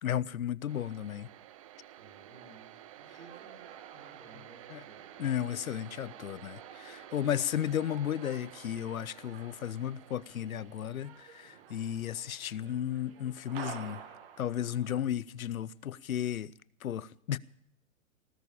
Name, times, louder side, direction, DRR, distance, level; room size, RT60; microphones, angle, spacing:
voice 1, 0.0-1.3 4.7-4.8 5.2-14.0 14.4-16.5 16.8-17.4, left 10 dB, 85° left, 0.7 m, -34 dB
sound 1, 0.7-14.5, right 12 dB, 25° right, 0.6 m, -53 dB
voice 2, 2.0-2.7 3.0-5.2 14.9-15.1, right 3 dB, 65° right, 5.7 m, -57 dB
sound 2, 3.0-15.0, right 8 dB, 45° right, 2.0 m, -52 dB
19.0 x 6.8 x 9.9 m
hypercardioid pair, 140°, 41 cm